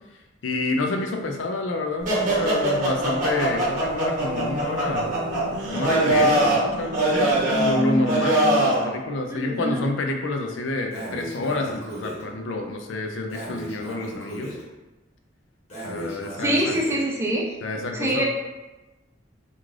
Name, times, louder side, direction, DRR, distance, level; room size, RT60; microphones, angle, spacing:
voice 1, 0.4-5.1 5.7-14.6 15.8-17.1 17.6-18.2, left 2 dB, 90° left, 3 dB, 0.4 m, -28 dB
sound 1, 2.0-8.9, right 1 dB, 45° right, 0.8 m, -22 dB
voice 2, 9.3-9.8 16.4-17.4 17.9-18.2, right 1 dB, 15° right, -2 dB, 0.4 m, -25 dB
Breathing, 10.9-12.2 13.3-14.6 15.7-17.0, right 1 dB, 40° left, 1.0 m, -36 dB
2.4 x 2.3 x 3.2 m, 1.1 s
head